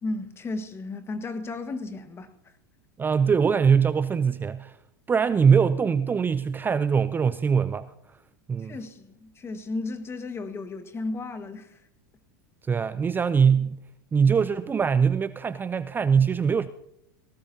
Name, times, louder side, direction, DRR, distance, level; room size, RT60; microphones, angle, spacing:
voice 1, 0.0-2.3 8.6-11.8, left 3 dB, 25° left, 1.6 m, -34 dB
voice 2, 3.0-4.7 5.1-7.9 8.5-8.7 12.7-13.8 14.1-16.7, right 6 dB, 20° right, 0.5 m, -22 dB
19.0 x 17.5 x 2.8 m
hypercardioid pair, 95°, 11 cm